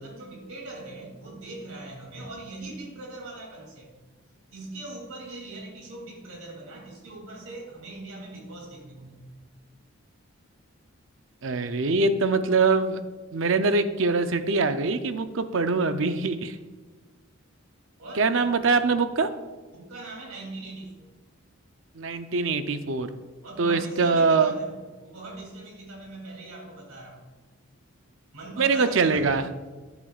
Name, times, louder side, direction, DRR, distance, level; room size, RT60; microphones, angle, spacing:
voice 1, 0.0-3.9 4.5-9.2 18.0-18.5 19.7-21.1 23.4-27.2 28.3-29.4, right 2 dB, 85° right, -1 dB, 2.9 m, -41 dB
voice 2, 11.4-13.0 13.3-16.6 18.2-19.3 22.0-23.1 23.6-24.5 28.6-29.4, right 4 dB, 60° right, 9 dB, 0.6 m, -23 dB
14.0 x 8.1 x 2.4 m, 1.3 s
head